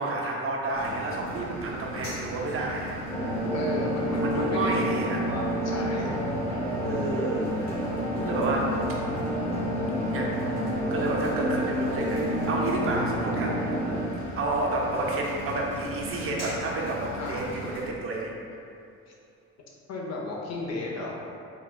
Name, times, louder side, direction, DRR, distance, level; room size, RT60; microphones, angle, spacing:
voice 1, 0.0-3.0 4.2-5.2 6.8-7.8 8.2-8.7 10.1-10.3 10.9-13.6 14.4-18.3, right 2 dB, 45° right, -2 dB, 0.6 m, -30 dB
sound 1, 0.7-17.9, equal, 80° left, 1.1 m, -38 dB
sound 2, 3.1-14.0, equal, 5° left, 0.7 m, -29 dB
voice 2, 3.4-4.7 5.3-6.7 17.2-17.5 19.9-21.2, left 2 dB, 60° left, -2 dB, 0.7 m, -34 dB
4.1 x 2.2 x 2.2 m, 2.6 s
cardioid pair, 90°, 30 cm